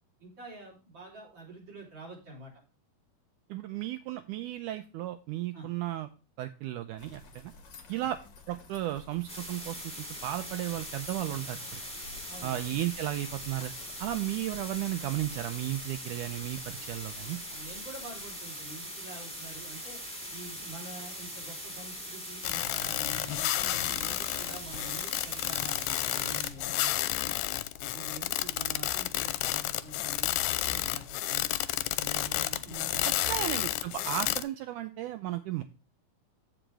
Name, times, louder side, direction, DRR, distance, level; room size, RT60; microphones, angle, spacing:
voice 1, 0.2-2.5 5.5-5.7 8.0-8.1 12.3-12.6 17.5-20.0 20.3-27.4 27.9-31.5 32.0-33.5, right 3 dB, 30° right, -3 dB, 4.1 m, -46 dB
voice 2, 3.5-6.1 6.4-7.5 7.9-8.2 8.5-11.8 12.4-13.7 14.0-17.4 33.0-35.6, right 14 dB, 90° right, 9 dB, 1.8 m, -34 dB
sound 1, 7.0-18.5, left 3 dB, 50° left, 1.3 m, -52 dB
sound 2, 9.3-26.5, equal, ahead, 2.6 m, -41 dB
sound 3, 22.4-34.4, left 15 dB, 80° left, 2.2 m, -31 dB
15.0 x 5.0 x 3.3 m, 0.32 s
omnidirectional pair, 4.2 m